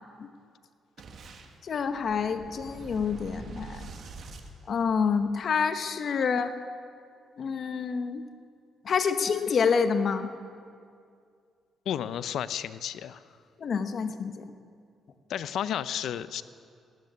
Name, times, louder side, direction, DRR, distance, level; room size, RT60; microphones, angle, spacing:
Boom, 1.0-5.4, right 4 dB, 60° right, 1.6 m, -45 dB
voice 1, 1.6-3.9 4.7-6.5 7.4-8.2 8.8-10.3 13.6-14.4, left 6 dB, 55° left, 9 dB, 1.1 m, -27 dB
voice 2, 11.9-13.2 15.3-16.4, left 10 dB, 75° left, 15 dB, 0.5 m, -32 dB
15.5 x 9.3 x 9.5 m, 2.3 s
cardioid pair, 90°, 0 cm